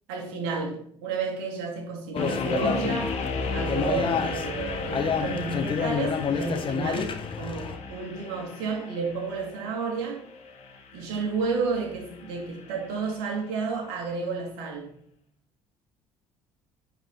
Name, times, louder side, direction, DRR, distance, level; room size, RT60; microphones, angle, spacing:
voice 1, 0.1-3.1 3.5-10.2 10.9-15.0, right 4 dB, 75° right, 2.5 m, -31 dB
sound 1, 2.1-7.8, left 6 dB, 40° left, 1.1 m, -29 dB
sound 2, 2.2-13.2, left 4 dB, 55° left, 1.6 m, -35 dB
9.8 x 4.9 x 4.1 m
hypercardioid pair, 55°, 13 cm